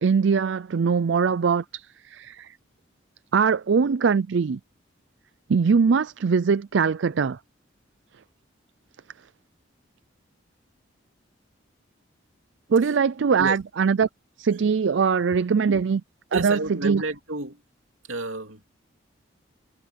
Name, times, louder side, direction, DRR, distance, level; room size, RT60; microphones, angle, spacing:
voice 1, 0.0-2.5 3.3-4.6 5.5-7.4 12.7-14.1 14.4-16.0 16.3-17.0, right 5 dB, 70° right, 0.4 m, -22 dB
voice 2, 16.3-17.6 18.0-18.7, right 2 dB, 90° right, 3.3 m, -31 dB
head